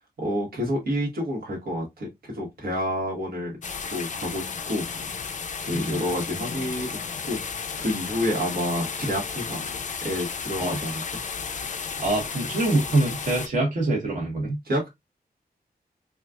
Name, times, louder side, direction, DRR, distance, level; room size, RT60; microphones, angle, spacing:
voice 1, 0.2-3.6 3.9-4.8 5.6-7.0 7.2-7.4 7.8-9.6 10.0-11.0 14.6-14.9, equal, 75° right, 1.6 m, -29 dB
sound 1, 3.6-13.5, left 5 dB, 50° left, 0.5 m, -33 dB
voice 2, 12.0-14.6, right 2 dB, 50° right, 1.4 m, -25 dB
4.3 x 2.4 x 2.4 m
wide cardioid pair, 170°, 16 cm